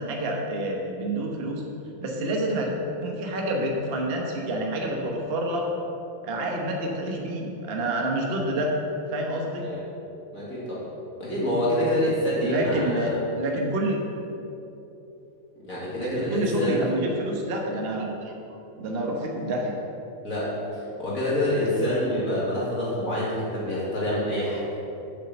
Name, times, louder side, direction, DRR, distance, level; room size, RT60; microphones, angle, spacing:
voice 1, 0.0-1.6 2.0-2.7 3.0-5.7 6.2-8.8 9.1-9.7 12.4-13.1 13.4-14.0 16.0-18.4 18.8-19.7, right 1 dB, 35° right, 0 dB, 1.0 m, -28 dB
voice 2, 10.3-10.8 11.2-13.2 15.6-16.8 20.2-24.6, left 1 dB, 40° left, -9 dB, 2.8 m, -26 dB
6.9 x 6.4 x 7.8 m, 3.0 s
omnidirectional pair, 2.3 m